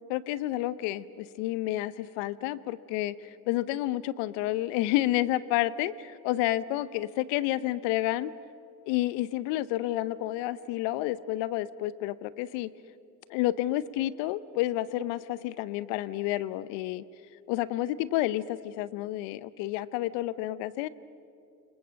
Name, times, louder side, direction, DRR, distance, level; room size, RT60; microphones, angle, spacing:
voice 1, 0.1-8.3 8.9-12.7 13.3-17.0 17.5-20.9, left 15 dB, 70° left, 18 dB, 0.8 m, -30 dB
29.0 x 25.5 x 7.5 m, 2.6 s
hypercardioid pair, 65°, 46 cm